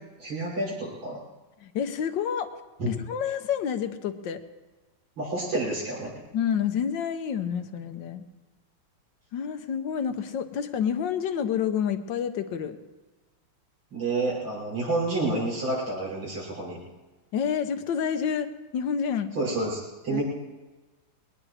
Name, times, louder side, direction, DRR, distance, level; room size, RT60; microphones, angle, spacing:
voice 1, 0.2-1.2 2.8-2.9 5.2-6.1 13.9-16.8 19.4-20.2, right 2 dB, 90° right, -5 dB, 7.3 m, -29 dB
voice 2, 1.6-2.5 2.9-4.4 6.3-8.3 9.3-12.8 17.3-19.3 20.1-20.2, left 8 dB, 65° left, 9 dB, 1.5 m, -29 dB
21.5 x 19.0 x 3.3 m, 1.2 s
omnidirectional pair, 2.3 m